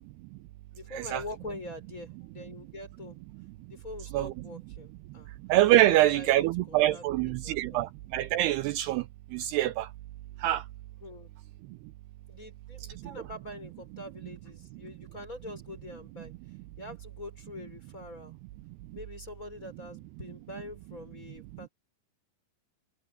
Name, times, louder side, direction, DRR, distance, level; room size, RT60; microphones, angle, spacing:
voice 1, 0.7-3.2 3.7-5.3 5.9-7.8 11.0-11.3 12.3-16.3 16.8-18.4 18.9-21.7, left 2 dB, 15° left, 5.6 m, -44 dB
voice 2, 5.5-9.1 9.3-9.9 10.4-10.6 13.0-13.1, right 15 dB, 90° right, 2.3 m, -25 dB
omnidirectional pair, 5.5 m